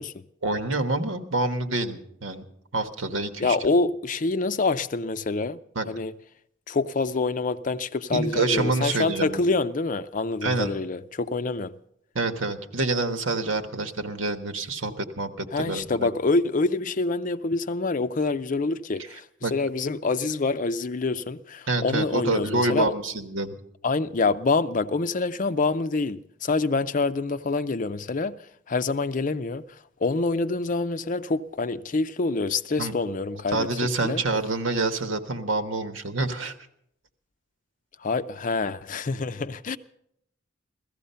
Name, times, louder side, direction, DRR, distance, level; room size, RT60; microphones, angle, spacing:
voice 1, 0.4-2.4 2.7-3.6 5.7-5.9 8.1-9.4 10.4-10.7 12.1-16.1 19.1-19.5 21.7-23.6 32.8-32.9 33.5-36.5, right 3 dB, 85° right, 1.4 m, -27 dB
voice 2, 3.4-5.6 5.9-6.1 6.7-11.7 15.5-19.3 19.5-22.9 23.8-28.4 28.7-29.6 30.0-33.7 34.0-34.2 38.0-39.8, left 3 dB, 40° left, 0.5 m, -26 dB
16.5 x 14.5 x 5.6 m
head